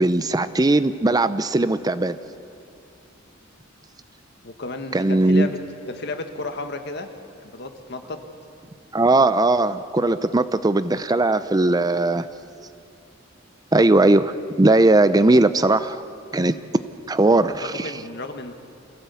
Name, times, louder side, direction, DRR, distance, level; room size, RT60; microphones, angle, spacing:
voice 1, 0.0-2.2 4.9-5.5 8.9-12.3 13.7-16.0 16.3-16.5 17.1-18.0, right 2 dB, 20° right, 13 dB, 0.5 m, -18 dB
voice 2, 4.4-5.6 5.9-7.1 7.4-8.2 17.6-18.5, left 2 dB, 60° left, 6 dB, 1.7 m, -33 dB
26.5 x 16.5 x 8.4 m, 2.6 s
head